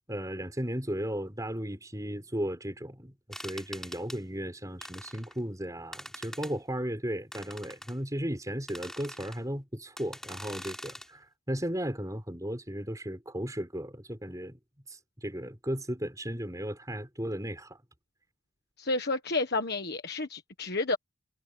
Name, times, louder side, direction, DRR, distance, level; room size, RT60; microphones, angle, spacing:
voice 1, 0.1-14.6 14.9-17.8, equal, 15° right, 5.3 m, -35 dB
sound 1, 3.3-4.2 4.8-5.4 5.9-6.5 7.3-7.9 8.7-9.4 10.0-11.1, left 1 dB, ahead, 7.4 m, -43 dB
voice 2, 18.8-21.0, left 3 dB, 50° left, 1.5 m, -30 dB
head